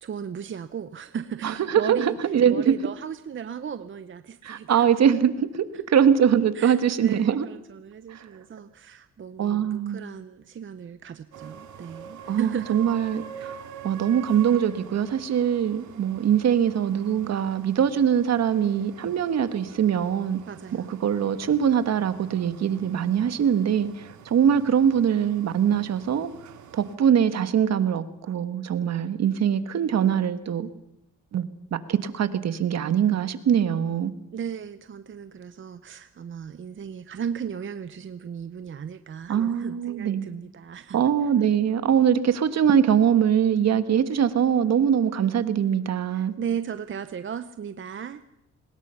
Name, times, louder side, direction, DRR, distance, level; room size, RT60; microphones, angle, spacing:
voice 1, 0.0-2.2 2.5-4.9 5.7-5.8 6.5-12.8 13.3-13.6 20.5-21.0 34.3-41.0 46.1-48.2, right 8 dB, 40° right, 0.8 m, -36 dB
voice 2, 1.4-2.7 4.4-7.5 8.1-8.3 9.4-10.0 12.3-20.4 20.7-26.3 26.7-30.7 31.3-31.4 31.7-34.1 39.3-40.3 40.9-46.3, right 8 dB, 60° right, 1.5 m, -22 dB
sound 1, 11.3-27.0, right 8 dB, 75° right, 2.3 m, -45 dB
23.0 x 20.5 x 5.8 m
cardioid pair, 90°, 30 cm